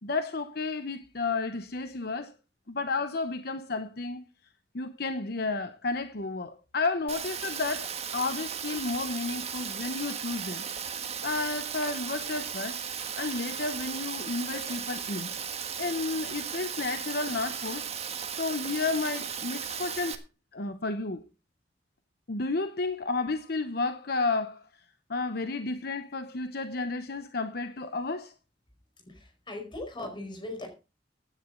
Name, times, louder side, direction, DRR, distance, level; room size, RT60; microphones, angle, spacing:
voice 1, 0.0-2.3 2.7-4.2 4.7-10.6 11.2-12.8 13.2-15.3 15.8-17.9 18.3-20.2 20.5-21.2 22.3-24.7 25.1-28.3, left 3 dB, 60° left, 0.9 m, -32 dB
Rain, 7.1-20.2, right 7 dB, 35° right, 1.5 m, -36 dB
voice 2, 29.1-30.7, left 2 dB, 25° left, 4.7 m, -39 dB
16.0 x 10.0 x 3.8 m
head